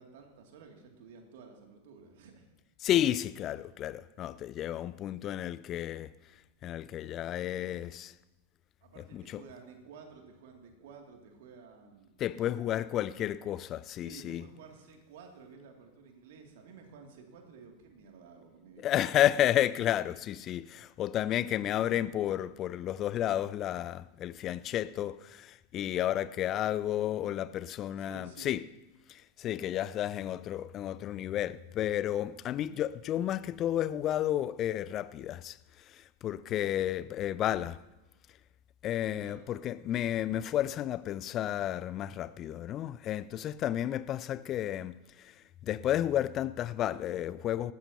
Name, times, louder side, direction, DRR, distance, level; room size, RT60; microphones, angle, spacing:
voice 1, 0.0-2.5 8.8-12.8 14.0-18.9 28.0-28.5 39.2-39.5, right 5 dB, 55° right, 2.5 m, -53 dB
voice 2, 2.8-6.1 6.6-8.1 9.0-9.4 12.2-14.4 18.8-28.6 29.1-35.6 35.9-37.8 38.8-45.3 45.6-47.7, left 12 dB, 30° left, 0.4 m, -32 dB
19.5 x 15.0 x 2.9 m
figure-of-eight pair, 90°, 0 cm